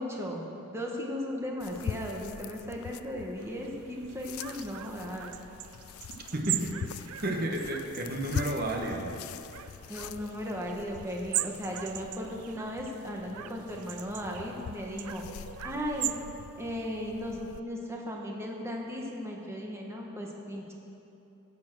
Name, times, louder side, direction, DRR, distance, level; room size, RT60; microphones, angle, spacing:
voice 1, 0.0-5.3 9.9-15.2 15.6-16.1 16.6-20.7, equal, 10° right, -1 dB, 1.3 m, -36 dB
sound 1, 1.6-17.6, left 8 dB, 75° left, 0.3 m, -44 dB
sound 2, 3.4-16.2, right 14 dB, 80° right, 0.4 m, -40 dB
voice 2, 6.3-9.1, right 1 dB, 45° right, 1 dB, 1.2 m, -32 dB
15.5 x 7.4 x 6.1 m, 2.8 s
head